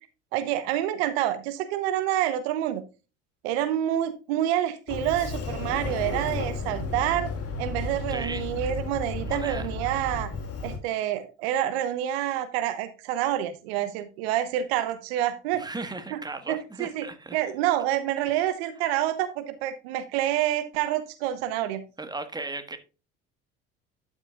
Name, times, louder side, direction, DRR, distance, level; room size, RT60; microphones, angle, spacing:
voice 1, 0.3-2.8 3.4-7.3 7.6-10.3 10.6-15.6 16.1-16.2 16.5-17.1 17.3-21.8, right 12 dB, 80° right, 1.0 m, -27 dB
Sliding door, 4.9-10.8, left 3 dB, 50° left, 2.9 m, -33 dB
voice 2, 8.1-8.5 9.2-9.7 15.6-17.5 22.0-22.8, right 3 dB, 15° right, 1.5 m, -36 dB
12.0 x 6.0 x 2.4 m
hypercardioid pair, 65°, 31 cm